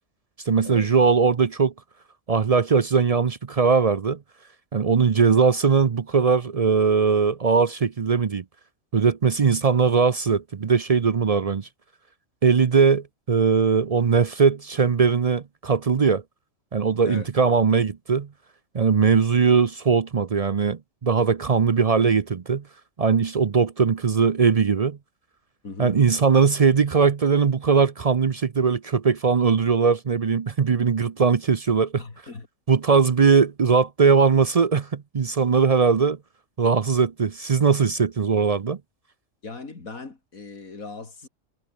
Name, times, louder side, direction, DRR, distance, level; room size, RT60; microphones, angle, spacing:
voice 1, 0.5-1.7 2.3-4.2 4.7-8.4 8.9-11.7 12.4-16.2 16.7-18.3 18.7-22.6 23.0-25.0 25.8-32.0 32.7-36.2 36.6-38.8, right 5 dB, 45° right, 0.5 m, -20 dB
voice 2, 25.6-25.9 32.0-32.5 39.4-41.3, left 4 dB, 90° left, 3.5 m, -38 dB
omnidirectional pair, 1.4 m